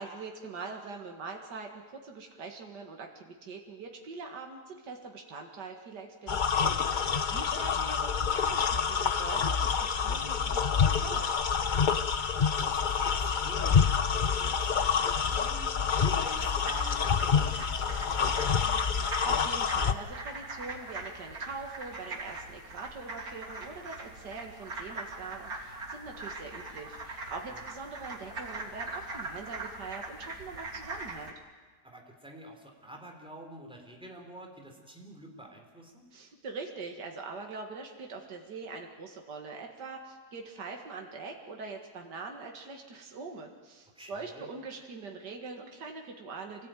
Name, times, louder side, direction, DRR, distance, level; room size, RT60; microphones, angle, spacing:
voice 1, 0.0-6.8 7.3-9.7 10.0-11.3 18.9-31.4 36.1-46.7, right 4 dB, 75° right, 2 dB, 2.5 m, -43 dB
sound 1, 6.3-19.9, left 6 dB, 40° left, 0.7 m, -27 dB
voice 2, 6.9-7.4 11.9-12.1 12.4-13.9 14.1-18.8 27.5-27.6 31.8-36.0 43.9-44.5, right 1 dB, 5° right, 1 dB, 3.9 m, -48 dB
sound 2, 16.2-31.3, right 2 dB, 60° right, 3.4 m, -42 dB
26.0 x 18.0 x 9.2 m, 1.4 s
omnidirectional pair, 1.8 m